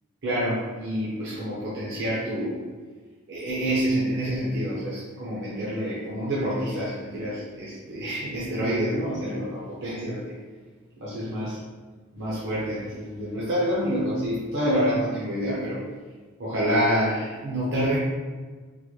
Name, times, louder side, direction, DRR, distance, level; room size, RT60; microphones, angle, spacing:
voice 1, 0.2-2.6 3.3-10.3 11.0-11.6 12.1-15.8 16.4-18.0, equal, 55° right, -8 dB, 0.7 m, -27 dB
3.8 x 2.1 x 3.1 m, 1.4 s
head